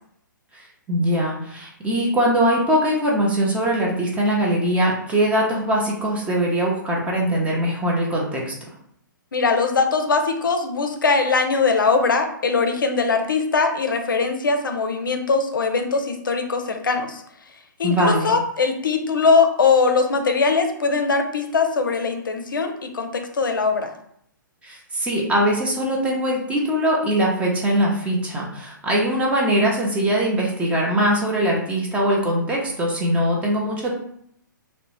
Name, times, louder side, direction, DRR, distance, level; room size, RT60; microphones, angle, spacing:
voice 1, 0.5-8.5 17.8-18.3 24.6-33.9, right 1 dB, 10° right, -2 dB, 0.5 m, -21 dB
voice 2, 9.3-17.2 17.8-23.9, left 4 dB, 75° left, 6 dB, 0.4 m, -21 dB
2.7 x 2.1 x 2.9 m, 0.70 s
figure-of-eight pair, 120°, 11 cm